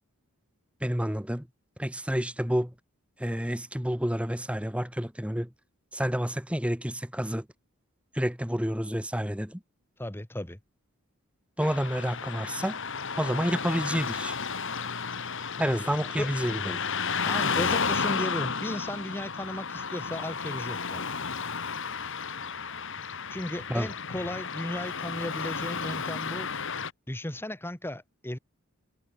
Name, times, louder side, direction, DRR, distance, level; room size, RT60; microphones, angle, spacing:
voice 1, 0.8-1.5 1.8-2.7 3.2-5.5 5.9-7.5 8.1-9.6 11.6-12.8 13.1-14.4 15.6-16.8 23.7-23.9, equal, 5° right, 1.9 m, -29 dB
voice 2, 10.0-10.6 16.2-16.3 17.2-21.1 23.3-26.5 27.1-28.4, left 1 dB, 10° left, 1.3 m, -35 dB
Car passing by / Traffic noise roadway noise, 11.6-26.9, left 5 dB, 60° left, 2.7 m, -32 dB
head